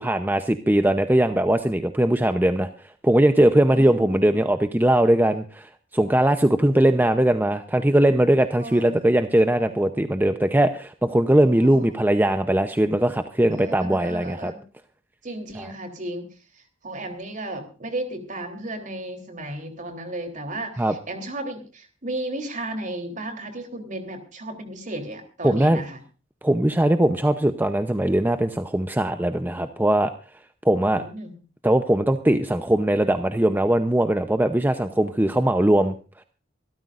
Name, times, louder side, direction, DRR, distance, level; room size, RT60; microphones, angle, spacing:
voice 1, 0.0-2.7 3.0-14.5 15.6-15.7 20.8-20.9 25.4-25.8 26.4-30.1 30.6-31.0 31.6-35.9, right 1 dB, 10° right, 8 dB, 0.7 m, -20 dB
voice 2, 3.7-4.5 8.6-9.0 11.5-12.0 13.5-14.6 15.2-16.3 16.8-26.0 30.9-31.4, right 1 dB, 45° right, 6 dB, 3.4 m, -34 dB
25.0 x 13.5 x 2.5 m, 0.37 s
head